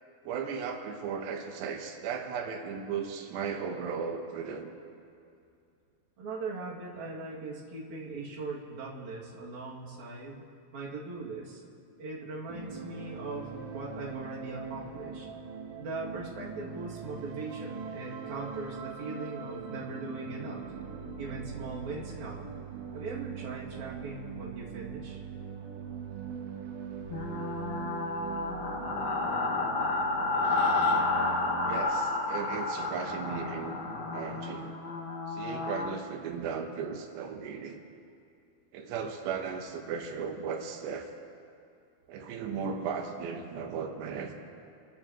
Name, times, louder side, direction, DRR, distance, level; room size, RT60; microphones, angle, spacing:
voice 1, 0.2-4.7 31.7-33.8 34.1-34.8 35.3-37.8 38.7-41.1 42.1-44.3, right 6 dB, 90° right, 4 dB, 3.2 m, -36 dB
voice 2, 6.2-10.4 10.7-11.6 12.0-15.3 15.8-20.6 21.2-22.5 22.9-25.2, right 3 dB, 50° right, -5 dB, 3.3 m, -40 dB
sound 1, 12.5-31.8, right 6 dB, 70° right, 2.2 m, -41 dB
sound 2, 27.1-36.0, left 3 dB, 60° left, 3.1 m, -31 dB
27.0 x 14.0 x 3.0 m, 2.5 s
omnidirectional pair, 4.7 m